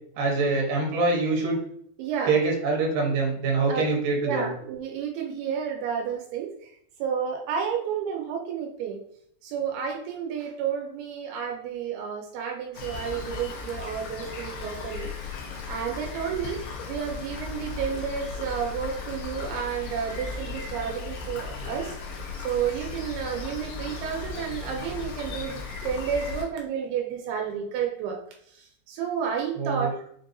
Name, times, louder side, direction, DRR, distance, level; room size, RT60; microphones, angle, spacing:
voice 1, 0.2-1.6 2.3-4.5 29.6-29.9, right 3 dB, 70° right, -1 dB, 2.5 m, -24 dB
voice 2, 2.0-2.4 2.7-2.8 3.7-3.9 4.2-9.0 9.4-15.1 15.7-16.6 16.9-22.0 22.4-28.2 28.5-30.0, right 7 dB, 85° right, 2 dB, 2.6 m, -31 dB
Rain, 12.7-26.4, left 4 dB, 90° left, 1.5 m, -36 dB
5.9 x 2.6 x 2.6 m, 0.65 s
omnidirectional pair, 4.4 m